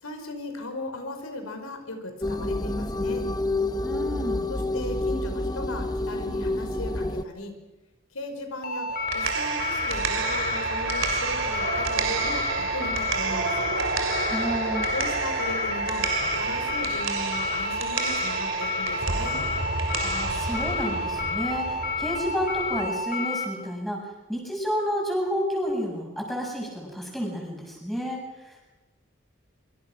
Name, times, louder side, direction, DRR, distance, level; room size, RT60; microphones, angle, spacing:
voice 1, 0.0-3.3 4.5-7.5 8.1-13.7 14.9-19.4, left 1 dB, 90° left, 6 dB, 5.1 m, -37 dB
sound 1, 2.2-7.2, left 2 dB, 20° left, 0.8 m, -28 dB
voice 2, 3.8-4.5 14.3-14.9 20.0-24.0 24.3-28.6, equal, ahead, -1 dB, 7.5 m, -30 dB
sound 2, 8.6-23.4, left 2 dB, 45° left, 4.5 m, -30 dB
sound 3, 8.9-22.9, right 5 dB, 65° right, 3.4 m, -30 dB
26.5 x 25.0 x 6.2 m, 1.1 s
head